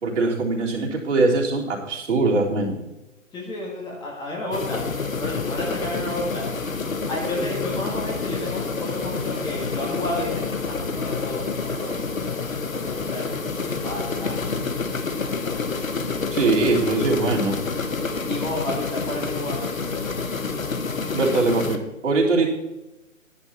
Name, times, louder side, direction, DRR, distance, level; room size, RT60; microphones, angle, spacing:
voice 1, 0.0-2.8 16.3-17.6 21.1-22.5, right 3 dB, 65° right, -3 dB, 3.7 m, -22 dB
voice 2, 3.3-4.8 5.2-6.5 7.1-14.8 15.3-15.8 16.5-16.6 18.3-19.7, left 1 dB, 10° left, -2 dB, 1.9 m, -32 dB
sound 1, 4.5-21.8, left 4 dB, 80° left, 1.4 m, -28 dB
12.0 x 11.0 x 4.4 m, 1.0 s
figure-of-eight pair, 140°, 40 cm